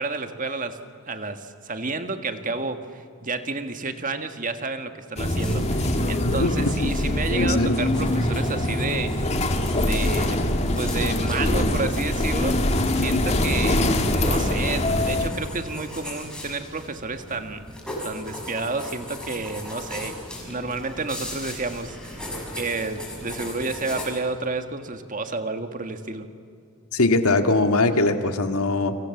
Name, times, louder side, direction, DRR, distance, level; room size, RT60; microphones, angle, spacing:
voice 1, 0.0-9.2 9.8-10.4 10.8-12.6 12.9-17.6 18.0-22.3 22.5-26.3, right 3 dB, 35° right, 7 dB, 1.7 m, -30 dB
sound 1, 5.2-15.3, left 1 dB, 30° left, 2.0 m, -23 dB
sound 2, 5.4-24.1, left 1 dB, 5° left, 6.1 m, -39 dB
voice 2, 6.2-7.0 7.3-7.8 26.9-29.0, left 2 dB, 80° left, 6 dB, 2.0 m, -22 dB
30.0 x 25.5 x 7.2 m, 2.4 s
head